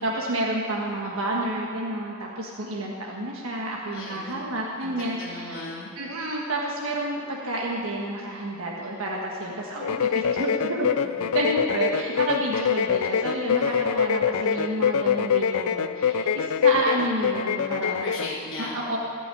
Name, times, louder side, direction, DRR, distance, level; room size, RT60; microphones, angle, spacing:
voice 1, 0.0-5.6 6.0-10.9 11.3-18.0 18.6-19.0, right 1 dB, 75° right, -2 dB, 1.5 m, -30 dB
voice 2, 3.9-4.4 4.8-5.9 11.0-11.4 13.5-14.0 17.8-18.8, left 2 dB, 50° left, -6 dB, 1.9 m, -38 dB
sound 1, 9.8-18.4, left 7 dB, 85° left, 0.5 m, -24 dB
15.0 x 6.2 x 9.8 m, 2.7 s
head